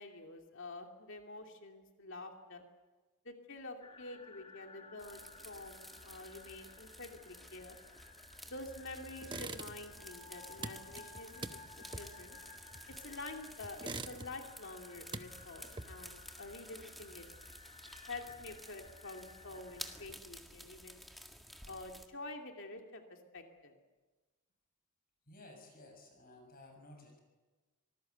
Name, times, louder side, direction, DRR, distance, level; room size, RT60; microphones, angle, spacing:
voice 1, 0.0-2.6 3.2-7.8 8.5-12.4 12.9-17.3 18.1-21.0 21.7-23.8, left 2 dB, 55° left, 3 dB, 2.6 m, -48 dB
sound 1, 3.8-20.1, left 4 dB, 25° left, 1.7 m, -57 dB
sound 2, 5.0-22.1, equal, ahead, 1.8 m, -53 dB
sound 3, 9.2-10.0 10.3-13.2 13.6-14.6 14.9-16.2, right 3 dB, 20° right, 0.9 m, -45 dB
voice 2, 25.3-27.2, left 2 dB, 40° left, 3 dB, 6.8 m, -55 dB
25.5 x 19.5 x 8.1 m, 1.2 s
head